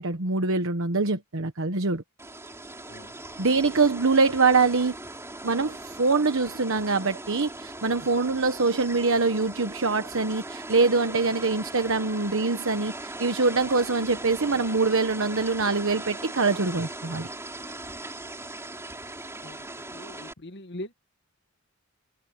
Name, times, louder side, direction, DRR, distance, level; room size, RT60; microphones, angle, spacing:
voice 1, 0.0-2.0 3.4-5.0 5.4-17.3, right 4 dB, 65° right, 1.2 m, -24 dB
sound 1, 2.2-20.3, right 2 dB, 10° right, 4.1 m, -39 dB
voice 2, 19.9-20.9, left 1 dB, 55° left, 1.7 m, -41 dB
head